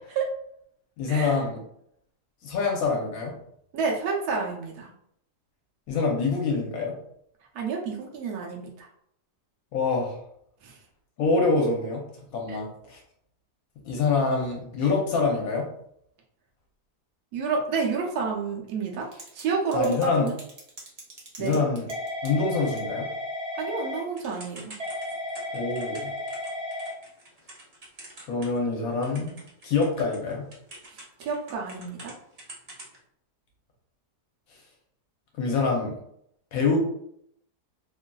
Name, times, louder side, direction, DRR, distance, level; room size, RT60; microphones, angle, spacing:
voice 1, 1.0-1.6 2.4-3.3 5.9-7.0 9.7-10.2 11.2-12.0 12.3-13.0 13.8-15.7 19.7-20.3 21.4-21.9 22.2-23.1 25.5-26.1 28.3-30.5 35.4-35.9 36.5-36.8, left 4 dB, 65° left, -1 dB, 1.0 m, -25 dB
voice 2, 3.7-4.9 7.5-8.9 10.6-10.8 12.5-12.6 17.3-19.1 19.3-20.4 21.4-21.6 23.5-24.7 30.9-32.1, right 4 dB, 75° right, 0 dB, 1.1 m, -29 dB
Typing / Telephone, 19.0-19.4 19.7-28.7 29.0-32.1 32.4-33.0, left 1 dB, 55° right, 0.4 m, -35 dB
3.0 x 2.5 x 2.2 m, 0.71 s
omnidirectional pair, 1.7 m